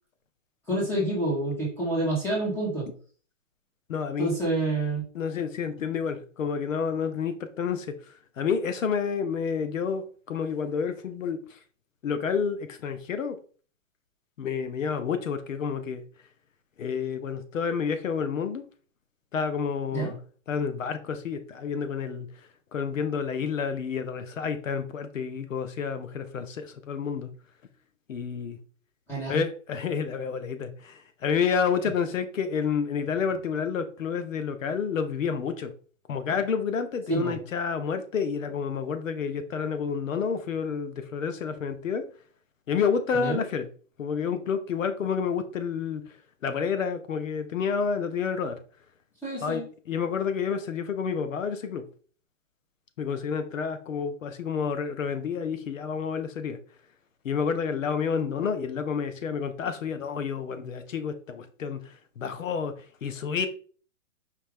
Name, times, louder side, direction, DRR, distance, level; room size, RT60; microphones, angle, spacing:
voice 1, 0.7-2.9 4.2-5.0 19.9-20.1 29.1-29.4 37.1-37.4 43.2-43.4 49.2-49.6, right 2 dB, 5° left, 1.2 m, -28 dB
voice 2, 3.9-4.4 5.1-8.0 8.4-11.4 12.0-13.4 14.4-16.0 16.8-18.6 19.3-20.2 20.5-22.3 22.7-27.3 28.1-28.6 29.3-35.7 36.1-42.1 42.7-43.7 44.0-46.0 46.4-48.6 49.4-51.8 53.0-56.6 57.2-62.7 63.0-63.5, left 6 dB, 85° left, 0.9 m, -29 dB
5.0 x 2.8 x 3.5 m
hypercardioid pair, 165°, 38 cm